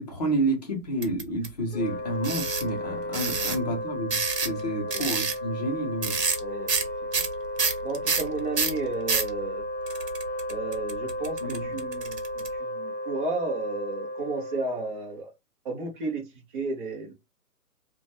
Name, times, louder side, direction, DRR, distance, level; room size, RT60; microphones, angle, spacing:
voice 1, 0.0-6.2 11.4-11.7, right 1 dB, 25° left, 0.5 m, -30 dB
sound 1, 1.0-1.5 2.2-2.7 3.1-3.6 4.1-4.6 4.9-5.4 6.0-6.4 6.7-6.9 7.1-9.3 9.9-12.5, right 5 dB, 80° right, 0.9 m, -27 dB
Wind instrument woodwind instrument, 1.7-15.1, left 1 dB, 45° left, 0.8 m, -34 dB
voice 2, 7.8-9.6 10.5-15.3 15.6-16.3 16.5-17.1, right 3 dB, 35° right, 0.6 m, -33 dB
2.4 x 2.1 x 2.9 m
hypercardioid pair, 140°, 48 cm